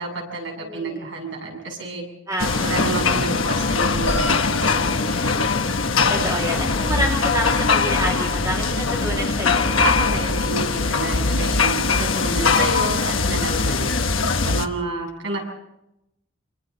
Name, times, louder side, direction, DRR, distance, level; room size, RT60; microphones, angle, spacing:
voice 1, 0.0-2.0 2.6-5.3 9.7-13.8 14.4-15.4, right 3 dB, 65° right, 0 dB, 7.8 m, -29 dB
voice 2, 0.6-1.1 2.3-2.9 6.1-9.8 13.8-14.1, right 1 dB, 15° right, -2 dB, 2.6 m, -28 dB
sound 1, 2.4-14.7, left 4 dB, 75° left, 1.3 m, -21 dB
27.5 x 25.0 x 4.1 m, 0.86 s
head